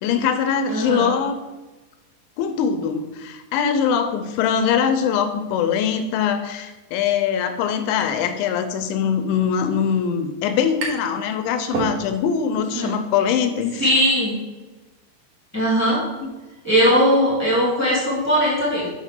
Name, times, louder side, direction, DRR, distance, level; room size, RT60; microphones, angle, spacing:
voice 1, 0.0-1.4 2.4-13.9, left 7 dB, 85° left, 8 dB, 3.0 m, -22 dB
voice 2, 0.7-1.1 12.6-13.0 13.8-14.3 15.5-16.0 16.6-18.9, equal, 10° left, -8 dB, 0.7 m, -19 dB
sound 1, 10.8-11.2 11.5-12.4, right 3 dB, 70° right, 2.5 m, -29 dB
7.2 x 6.2 x 3.8 m, 1.1 s
omnidirectional pair, 5.4 m